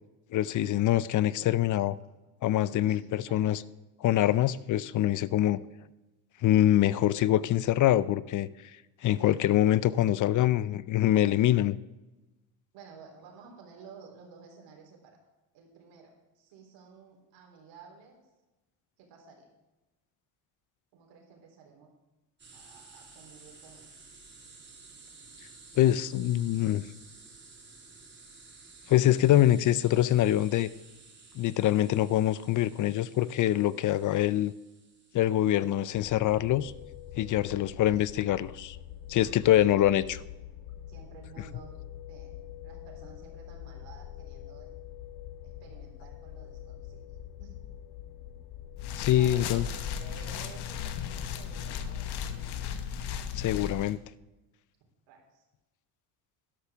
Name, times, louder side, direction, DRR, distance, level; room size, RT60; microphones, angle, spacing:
voice 1, 0.3-2.0 2.4-3.6 4.0-5.6 6.4-8.5 9.0-11.8 25.8-26.8 28.9-30.7 31.4-34.5 35.1-36.7 37.2-38.8 39.1-40.2 48.9-49.7 53.3-54.0, left 13 dB, 45° left, 18 dB, 0.5 m, -24 dB
voice 2, 2.8-3.5 4.2-4.4 12.7-15.2 15.5-18.2 19.0-19.5 20.9-21.9 22.5-24.1 37.5-37.8 39.2-39.8 40.9-41.8 42.1-42.4 42.6-44.7 45.4-47.1 47.4-47.6 48.2-48.3 49.1-52.5 55.1-55.4, right 5 dB, 75° right, 1 dB, 3.6 m, -53 dB
sound 1, 22.4-36.9, right 3 dB, 25° right, 3.0 m, -54 dB
sound 2, 35.9-52.7, left 11 dB, 80° left, 1.3 m, -45 dB
sound 3, 48.8-53.9, left 8 dB, 60° left, 1.1 m, -36 dB
12.5 x 11.5 x 3.6 m, 1.1 s
supercardioid pair, 100°, 44 cm